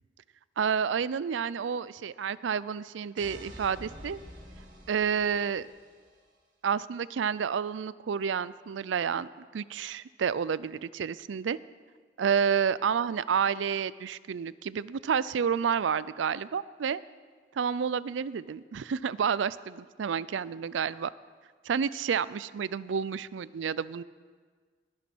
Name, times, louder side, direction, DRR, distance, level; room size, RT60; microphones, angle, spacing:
voice 1, 0.6-4.2 4.9-5.7 6.6-11.6 12.2-17.0 17.6-21.1 21.7-24.0, right 7 dB, 75° right, 18 dB, 0.4 m, -30 dB
sound 1, 3.2-6.0, equal, 45° right, 2.6 m, -48 dB
20.0 x 7.1 x 6.2 m, 1.5 s
head